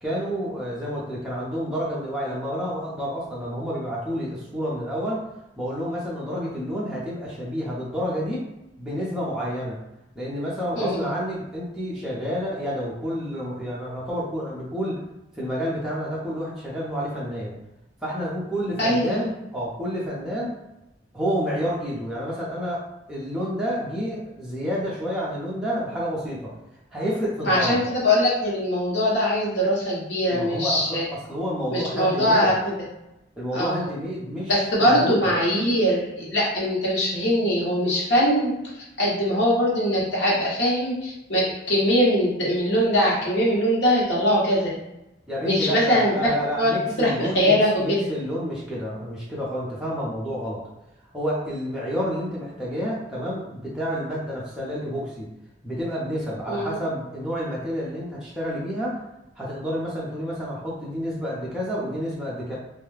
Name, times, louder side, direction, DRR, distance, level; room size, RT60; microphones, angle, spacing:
voice 1, 0.0-5.2 5.6-8.5 8.8-9.8 10.1-15.0 15.4-17.6 18.0-20.6 21.1-26.5 26.9-27.9 30.3-32.5 33.4-34.5 34.8-35.3 45.3-50.6 51.1-55.3 55.6-59.0 59.4-62.5, equal, 5° right, -7 dB, 0.6 m, -29 dB
voice 2, 10.7-11.1 18.8-19.3 27.4-31.0 31.7-32.9 33.5-33.9 34.5-38.5 39.0-44.7 45.4-46.7 47.0-48.0 56.5-56.8, equal, 70° left, -5 dB, 1.0 m, -22 dB
2.3 x 2.2 x 3.2 m, 0.92 s
head